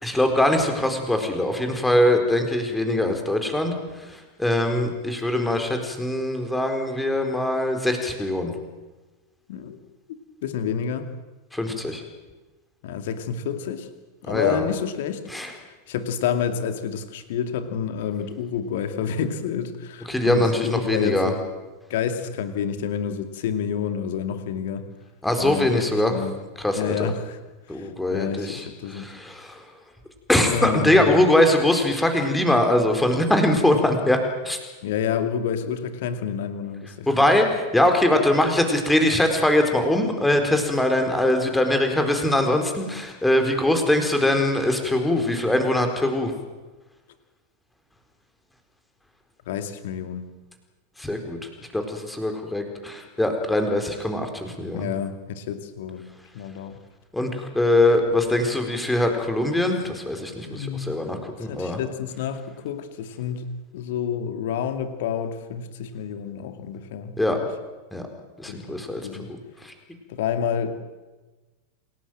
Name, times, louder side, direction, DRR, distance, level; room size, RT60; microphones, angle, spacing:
voice 1, 0.0-3.7 4.1-8.5 11.5-12.0 14.3-14.7 15.3-15.5 20.1-21.3 25.2-26.2 26.6-27.1 27.7-29.6 30.3-34.2 34.4-34.6 37.1-46.3 51.0-54.9 57.1-61.8 67.2-67.4 67.9-68.1 68.4-69.0 69.3-69.4 69.6-69.7, left 1 dB, 5° left, 5 dB, 4.3 m, -22 dB
voice 2, 9.5-9.8 10.4-11.1 12.8-13.9 14.2-15.2 15.9-21.4 21.9-24.8 25.4-26.4 26.8-27.4 27.7-29.1 30.5-31.1 34.8-37.1 49.5-50.3 54.7-56.0 56.3-56.8 60.5-61.0 61.4-63.5 63.7-67.5 68.5-69.3 70.1-70.8, left 8 dB, 55° left, 9 dB, 2.4 m, -29 dB
27.5 x 18.0 x 7.7 m, 1.2 s
figure-of-eight pair, 90°, 0 cm